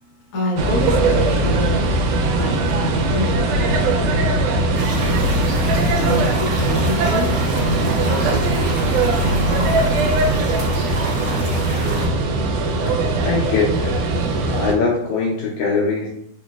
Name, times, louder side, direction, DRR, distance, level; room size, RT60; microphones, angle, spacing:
voice 1, 0.3-1.9 2.3-4.2 6.0-7.3 7.6-10.6 11.2-11.9, left 1 dB, 60° left, -5 dB, 0.9 m, -28 dB
sound 1, 0.6-14.7, right 2 dB, 80° right, 2.0 m, -20 dB
sound 2, 4.7-12.1, right 1 dB, 45° right, 1.8 m, -28 dB
voice 2, 13.2-14.0 14.5-16.1, left 4 dB, 80° left, -2 dB, 1.7 m, -21 dB
4.7 x 3.0 x 2.3 m, 0.74 s
omnidirectional pair, 3.7 m